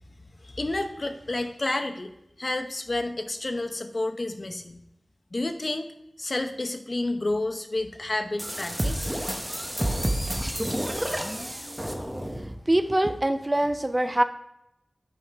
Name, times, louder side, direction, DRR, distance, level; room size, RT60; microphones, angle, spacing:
voice 1, 0.4-2.1 2.4-4.8 5.3-5.9 6.2-9.1, left 2 dB, 50° left, 7 dB, 0.8 m, -30 dB
sound 1, 8.4-12.5, right 1 dB, 10° right, 0.9 m, -29 dB
voice 2, 12.3-14.2, right 1 dB, 25° right, 9 dB, 0.5 m, -24 dB
8.3 x 5.6 x 3.4 m, 0.86 s
wide cardioid pair, 75°, 0 cm